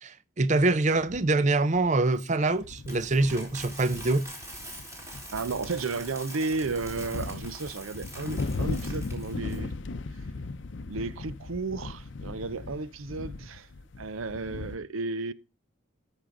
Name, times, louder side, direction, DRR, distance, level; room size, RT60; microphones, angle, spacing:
voice 1, 0.0-4.2, right 2 dB, 35° right, 0.5 m, -25 dB
sound 1, 0.6-0.7 1.0-1.5 1.7-2.0 2.5-14.8, left 3 dB, 60° left, 0.6 m, -38 dB
Coin (dropping), 2.1-9.6, right 1 dB, 15° right, 4.0 m, -44 dB
voice 2, 5.3-9.7 10.9-13.7 14.0-15.3, right 3 dB, 85° right, 0.6 m, -33 dB
14.0 x 6.2 x 3.8 m
head